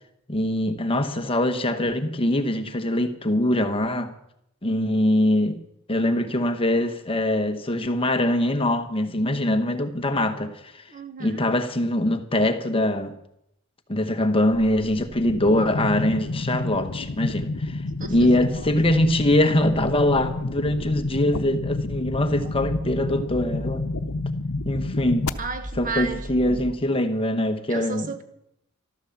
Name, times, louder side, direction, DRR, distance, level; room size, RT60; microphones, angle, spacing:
voice 1, 0.3-4.1 4.6-5.6 5.9-10.8 11.2-13.1 13.9-17.8 18.1-23.9 24.6-25.3 25.8-28.1, left 1 dB, 25° left, 1.1 m, -23 dB
voice 2, 10.9-11.5 14.6-14.7 15.7-15.8 18.0-18.7 22.4-22.5 25.4-26.6 27.7-28.2, right 3 dB, 40° right, 1.4 m, -34 dB
sound 1, 15.1-17.1 17.4-17.5 17.6-17.7 18.0-26.7, equal, 20° right, 0.8 m, -40 dB
sound 2, 15.3-25.3, left 2 dB, 80° left, 0.8 m, -30 dB
13.5 x 13.0 x 7.1 m
head